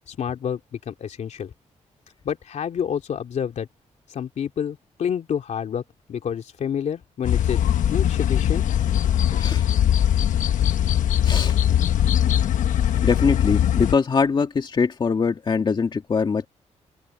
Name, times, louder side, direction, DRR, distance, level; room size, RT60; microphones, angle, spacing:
voice 1, 0.1-1.5 2.2-3.7 4.1-5.8 6.1-7.6 7.9-8.6, left 8 dB, 65° left, 2.9 m, -28 dB
sound 1, 7.2-13.9, left 10 dB, 85° left, 1.1 m, -20 dB
voice 2, 11.2-11.6 13.0-16.5, left 5 dB, 35° left, 2.1 m, -22 dB
open air
wide cardioid pair, 130°, 13 cm